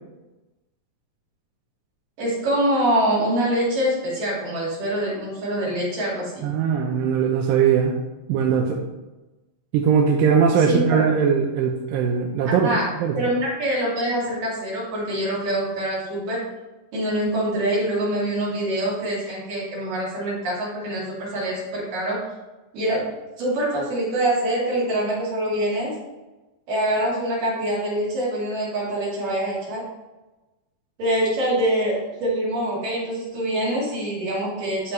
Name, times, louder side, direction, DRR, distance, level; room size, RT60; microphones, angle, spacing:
voice 1, 2.2-6.5 10.7-11.0 12.5-12.9 13.1-16.4 16.9-22.2 22.7-23.0 23.4-25.9 26.7-29.8 31.0-34.9, right 1 dB, 70° right, -7 dB, 4.3 m, -24 dB
voice 2, 6.4-7.9 8.3-8.8 9.7-12.7 13.0-13.3, right 6 dB, 90° right, 1 dB, 2.4 m, -20 dB
12.5 x 4.5 x 3.1 m, 1.1 s
omnidirectional pair, 3.9 m